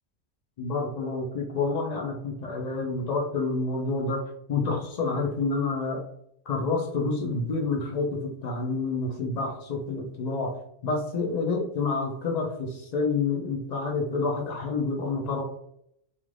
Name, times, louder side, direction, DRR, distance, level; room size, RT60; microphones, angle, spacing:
voice 1, 0.6-4.2 4.5-6.0 6.5-10.5 10.8-15.4, left 3 dB, 70° left, 1 dB, 0.4 m, -28 dB
2.5 x 2.4 x 3.1 m, 0.74 s
omnidirectional pair, 1.3 m